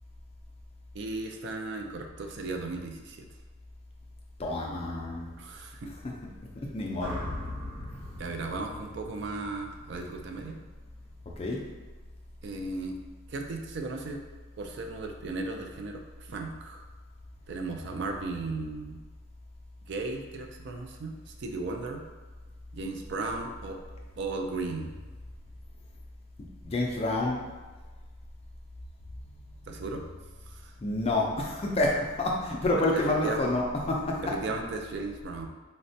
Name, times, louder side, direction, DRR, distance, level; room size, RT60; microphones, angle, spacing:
voice 1, 0.9-3.3 5.4-5.9 8.2-10.5 12.4-13.0 13.3-14.2 14.6-16.8 17.5-19.0 19.9-22.0 22.7-23.8 24.2-24.9 29.7-30.0 30.5-30.7 32.8-33.5 34.2-35.5, right 3 dB, 55° right, 3 dB, 0.3 m, -36 dB
voice 2, 4.4-5.3 6.7-7.3 11.4-11.7 26.6-27.5 30.8-34.3, left 2 dB, 30° left, -1 dB, 0.3 m, -28 dB
sound 1, 7.0-11.2, left 1 dB, 85° right, 0.6 m, -41 dB
4.0 x 2.1 x 2.6 m, 1.3 s
head